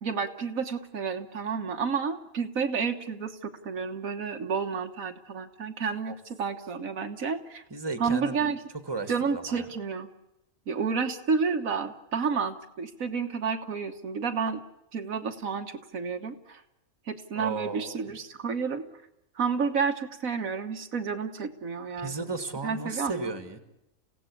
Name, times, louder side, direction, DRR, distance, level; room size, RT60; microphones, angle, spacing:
voice 1, 0.0-7.6 8.0-8.6 9.1-10.1 10.7-14.6 14.9-16.6 17.1-18.8 19.4-22.2 22.6-23.3, right 5 dB, 85° right, 5 dB, 1.7 m, -30 dB
voice 2, 7.7-9.7 17.3-18.0 22.0-23.6, right 3 dB, 20° right, 9 dB, 1.7 m, -35 dB
29.5 x 16.5 x 8.5 m, 0.87 s
omnidirectional pair, 1.4 m